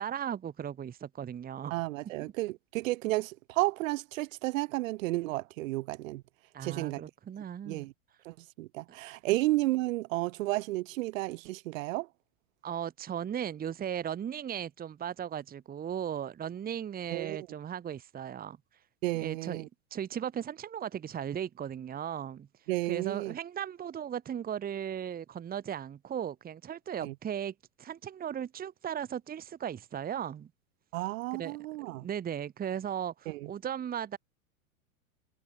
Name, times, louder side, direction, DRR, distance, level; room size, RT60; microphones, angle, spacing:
voice 1, 0.0-1.7 2.2-2.3 6.5-7.9 12.6-18.6 19.1-19.6 19.9-22.5 22.8-30.5 31.3-31.6 31.8-34.2, right 9 dB, 20° right, 1.4 m, -37 dB
voice 2, 1.7-6.2 6.6-7.0 7.7-7.9 8.3-12.1 17.1-17.4 19.0-19.7 22.7-23.3 27.0-27.1 30.9-32.1 33.3-33.4, right 19 dB, 65° right, 2.1 m, -32 dB
hypercardioid pair, 110°, 42 cm